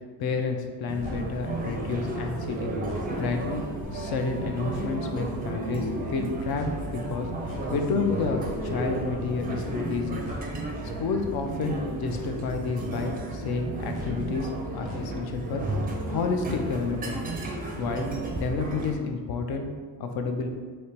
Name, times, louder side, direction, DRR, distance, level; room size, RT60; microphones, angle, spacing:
voice 1, 0.2-2.7 3.1-3.6 3.9-7.3 7.7-10.2 11.0-15.6 16.1-17.2 17.8-18.1 18.4-19.7 20.0-20.5, left 4 dB, 60° left, 4 dB, 0.6 m, -30 dB
sound 1, 0.9-18.9, right 2 dB, 20° right, 0.4 m, -33 dB
sound 2, 1.0-15.8, left 3 dB, 80° left, 1.0 m, -44 dB
sound 3, 3.8-10.2, left 3 dB, 35° left, 0.9 m, -45 dB
3.3 x 2.9 x 4.3 m, 1.5 s
cardioid pair, 155°, 42 cm